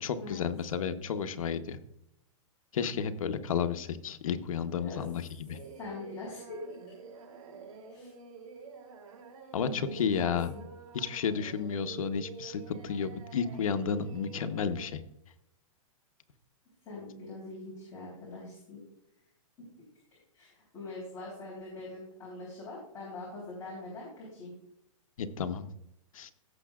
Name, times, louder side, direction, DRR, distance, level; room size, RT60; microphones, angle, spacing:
voice 1, 0.0-1.8 2.7-5.6 9.5-10.5 10.9-15.0 25.2-25.7 26.1-26.3, left 6 dB, 80° left, 9 dB, 1.0 m, -32 dB
Singing, 5.5-14.9, right 5 dB, 90° right, 3.2 m, -49 dB
voice 2, 5.7-6.6 7.9-8.1 9.6-9.9 10.2-10.3 16.9-18.8 19.6-19.7 20.3-24.5, left 2 dB, 15° left, -7 dB, 3.7 m, -43 dB
16.5 x 7.2 x 2.4 m, 0.79 s
hypercardioid pair, 165°, 17 cm